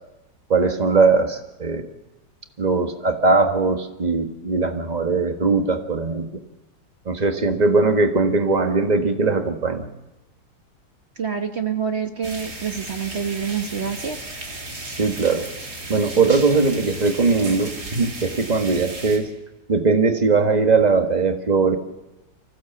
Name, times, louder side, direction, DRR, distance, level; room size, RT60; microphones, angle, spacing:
voice 1, 0.5-1.9 2.6-6.3 7.0-9.9 15.0-15.4 15.9-19.3 19.7-21.8, right 4 dB, 25° right, 6 dB, 1.5 m, -20 dB
voice 2, 11.2-14.2, right 7 dB, 40° right, 6 dB, 1.2 m, -27 dB
sound 1, 12.2-19.2, right 2 dB, 60° right, 3.6 m, -35 dB
25.0 x 16.0 x 7.2 m, 1.0 s
omnidirectional pair, 2.0 m